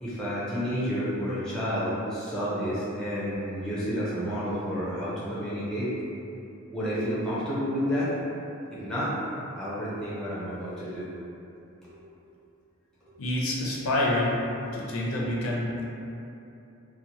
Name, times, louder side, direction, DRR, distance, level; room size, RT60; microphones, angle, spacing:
voice 1, 0.0-5.9 6.7-8.1 8.7-9.1 9.5-11.1 11.8-12.1 13.0-13.2 13.5-13.7, equal, 5° left, -10 dB, 0.4 m, -30 dB
voice 2, 13.2-14.4 14.7-15.8, left 1 dB, 75° left, -4 dB, 0.5 m, -27 dB
2.7 x 2.1 x 2.8 m, 2.8 s
head